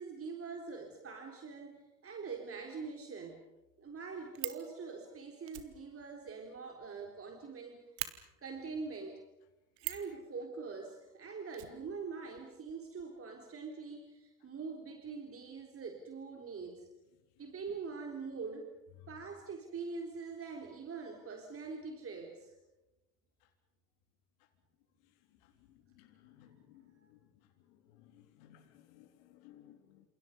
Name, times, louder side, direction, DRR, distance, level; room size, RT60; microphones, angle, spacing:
voice 1, 0.0-3.4 3.8-7.8 8.4-9.2 9.8-16.9 17.4-18.7 19.1-22.5, right 4 dB, 30° right, 3 dB, 3.8 m, -44 dB
Fire, 3.6-3.7 3.9-4.7 5.5-7.2 7.5-7.6 8.0-8.1 9.8-10.1 11.5-12.4 12.7-12.8 13.0-13.1, right 18 dB, 60° right, 2.3 m, -42 dB
voice 2, 26.0-26.9 28.0-28.6 28.9-30.0, left 12 dB, 60° left, 4 dB, 3.6 m, -60 dB
29.0 x 28.0 x 5.4 m, 1.0 s
hypercardioid pair, 75°, 46 cm